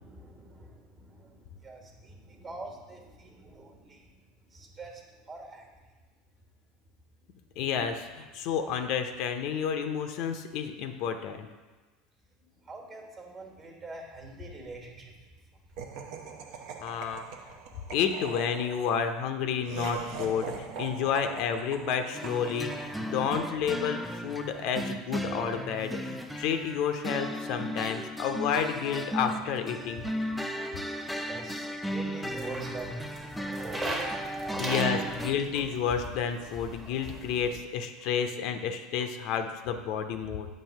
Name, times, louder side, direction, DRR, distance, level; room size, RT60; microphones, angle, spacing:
voice 1, 0.0-4.1 4.5-5.0 5.3-5.7 12.6-15.1 31.3-35.1 35.5-35.6, right 3 dB, 35° right, 2 dB, 1.4 m, -43 dB
voice 2, 7.6-11.5 16.8-17.2 17.9-30.0 34.6-40.5, left 7 dB, 60° left, 6 dB, 0.5 m, -30 dB
Laughter, 15.8-24.1, right 6 dB, 65° right, 0.6 m, -42 dB
sound 1, 22.1-35.3, equal, ahead, 0.4 m, -35 dB
sound 2, 32.3-37.6, right 1 dB, 20° right, 1.0 m, -39 dB
7.3 x 2.6 x 5.6 m, 1.3 s
hypercardioid pair, 90°, 0 cm